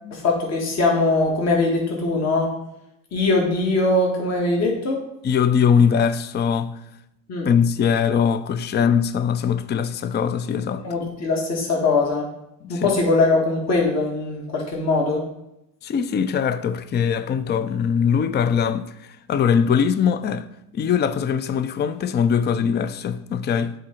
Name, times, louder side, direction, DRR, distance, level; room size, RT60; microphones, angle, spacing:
voice 1, 0.1-2.5 3.1-5.0 7.3-7.5 10.8-12.3 12.7-15.2, left 3 dB, 45° left, 1.6 m, -21 dB
voice 2, 5.2-6.8 7.4-10.9 12.6-13.0 15.8-20.5 20.7-23.7, left 7 dB, 30° left, 0.4 m, -21 dB
7.7 x 3.8 x 4.4 m
cardioid pair, 95°, 36 cm